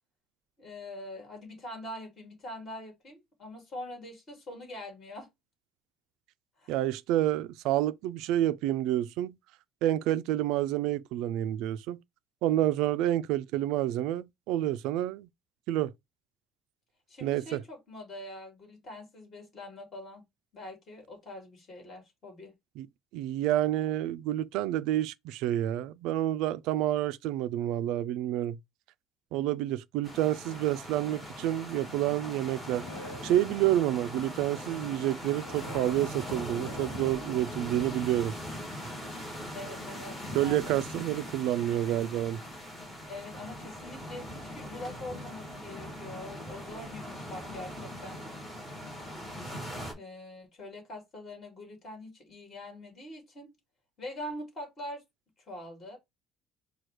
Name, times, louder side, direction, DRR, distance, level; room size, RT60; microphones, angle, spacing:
voice 1, 0.6-5.3 6.6-6.8 17.1-20.2 20.5-22.5 39.5-40.8 43.1-48.2 49.9-53.5 54.0-55.0 55.5-56.0, left 1 dB, 30° left, 2.4 m, -43 dB
voice 2, 6.7-9.4 9.8-12.0 12.4-15.3 15.7-15.9 17.2-17.6 22.8-22.9 23.1-28.6 29.3-32.9 33.2-38.3 40.3-42.4, right 13 dB, 70° right, 0.4 m, -29 dB
sound 1, 30.0-49.9, equal, 10° left, 1.7 m, -41 dB
sound 2, 32.4-34.3 35.1-39.3, left 2 dB, 75° left, 1.0 m, -50 dB
4.7 x 2.3 x 4.5 m
cardioid pair, 175°, 0 cm